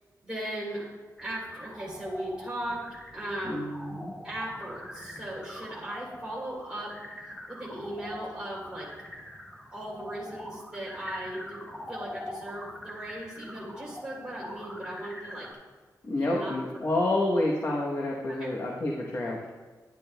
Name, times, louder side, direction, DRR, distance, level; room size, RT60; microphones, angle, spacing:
voice 1, 0.2-0.8 1.2-2.8 3.1-3.7 4.2-8.9 9.7-11.6 11.9-15.5 16.2-16.5 18.3-18.4, right 1 dB, 15° right, -6 dB, 3.0 m, -37 dB
sound 1, 1.2-15.5, left 1 dB, 5° left, 0.8 m, -43 dB
voice 2, 3.4-4.1 16.0-19.5, left 1 dB, 40° left, -2 dB, 0.9 m, -29 dB
10.5 x 10.5 x 2.2 m, 1.3 s
wide cardioid pair, 170°, 7 cm